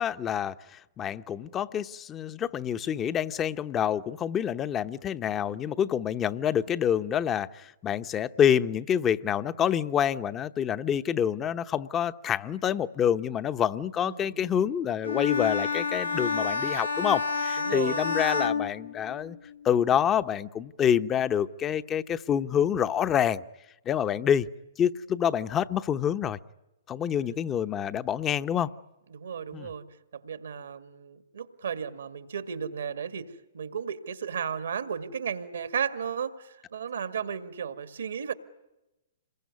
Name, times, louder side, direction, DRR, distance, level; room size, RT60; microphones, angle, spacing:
voice 1, 0.0-19.4 19.6-23.4 23.9-24.5 24.8-26.4 26.9-28.7 29.5-29.7, left 9 dB, 25° left, 12 dB, 0.9 m, -27 dB
voice 2, 14.0-14.5 17.6-18.1 27.2-27.4 29.1-29.9 30.1-38.3, right 7 dB, 75° right, 10 dB, 1.9 m, -34 dB
Bowed string instrument, 15.0-19.5, left 5 dB, 90° left, 1.6 m, -29 dB
27.5 x 22.0 x 9.6 m, 0.99 s
hypercardioid pair, 125°, 0 cm